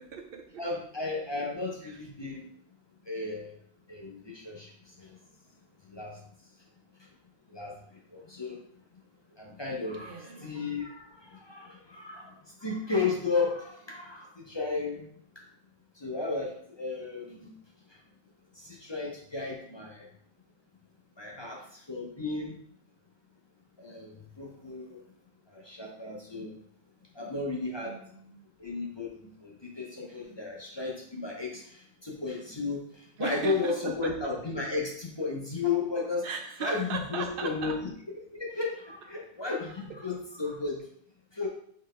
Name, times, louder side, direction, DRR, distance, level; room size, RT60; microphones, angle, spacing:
voice 1, 0.0-0.6 1.8-2.0 9.9-10.5 27.8-28.4 33.2-34.1 36.2-37.8, right 5 dB, 65° right, 4 dB, 0.8 m, -38 dB
voice 2, 0.6-2.5 3.1-3.5 3.9-4.7 5.0-5.2 5.9-6.2 7.5-7.7 8.1-8.6 9.4-12.3 12.6-15.1 16.0-17.5 18.6-20.1 21.2-22.6 23.8-24.1 24.4-25.0 25.5-26.5 27.1-28.0 28.6-36.3 36.6-37.8 38.3-40.8 41.3-41.5, left 4 dB, 30° left, -2 dB, 0.6 m, -34 dB
3.9 x 3.1 x 3.2 m, 0.65 s
omnidirectional pair, 1.1 m